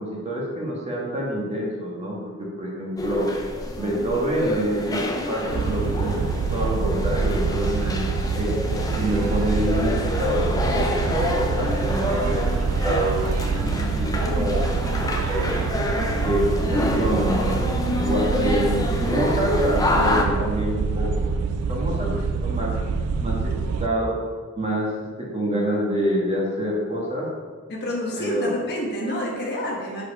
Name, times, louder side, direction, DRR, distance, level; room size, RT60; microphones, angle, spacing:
voice 1, 0.0-3.3 3.8-6.1 6.5-8.1 8.3-8.5 9.0-10.4 10.7-10.8 11.1-13.3 13.9-14.7 15.3-15.7 16.2-16.4 16.7-21.3 21.7-22.7 23.2-23.5 23.8-24.1 24.5-24.9 25.2-27.3 28.2-28.5, equal, 30° right, -3 dB, 1.4 m, -27 dB
sound 1, 3.0-20.2, left 1 dB, 15° left, 0.6 m, -28 dB
sound 2, 5.5-23.9, right 4 dB, 90° right, 0.4 m, -25 dB
voice 2, 27.7-30.0, equal, 50° left, -2 dB, 1.3 m, -28 dB
4.8 x 4.6 x 5.3 m, 1.5 s
head